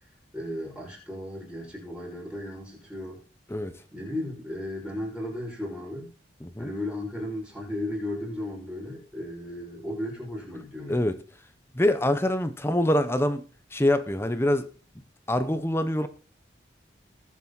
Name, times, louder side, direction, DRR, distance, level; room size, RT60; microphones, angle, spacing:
voice 1, 0.3-3.2 3.9-6.1 6.6-11.0, left 1 dB, 5° right, -3 dB, 5.6 m, -35 dB
voice 2, 11.7-13.4 13.7-14.7 15.3-16.1, left 1 dB, 15° left, 10 dB, 0.8 m, -24 dB
19.5 x 7.4 x 4.1 m, 0.36 s
head